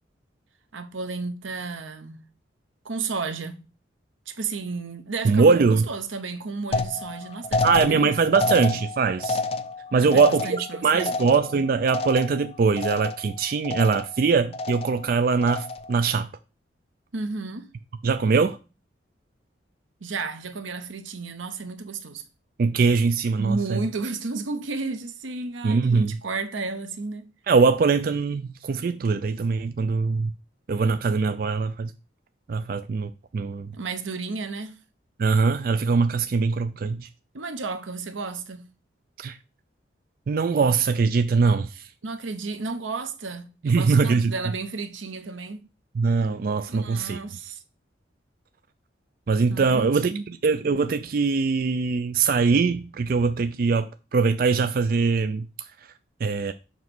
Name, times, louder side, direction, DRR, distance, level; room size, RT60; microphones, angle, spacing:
voice 1, 0.7-2.2 2.8-3.6 4.3-5.6 5.9-8.1 9.9-11.1 17.1-17.7 20.0-22.2 23.4-27.2 33.7-34.7 37.3-38.6 42.0-45.6 46.7-47.6 49.5-50.3, right 4 dB, 90° right, 0.9 m, -32 dB
voice 2, 5.2-5.9 7.6-9.4 9.9-16.3 18.0-18.6 22.6-23.8 25.6-26.2 27.5-30.3 30.7-31.9 32.5-33.7 35.2-37.1 39.2-39.4 40.3-41.9 43.6-44.3 46.0-47.2 49.3-55.5 56.2-56.5, right 4 dB, 50° right, 0.3 m, -22 dB
sound 1, 6.7-12.5 12.8-13.3 13.6-14.2 14.5-15.1 15.4-16.0, left 3 dB, 30° left, 0.4 m, -29 dB
7.2 x 3.0 x 6.0 m
head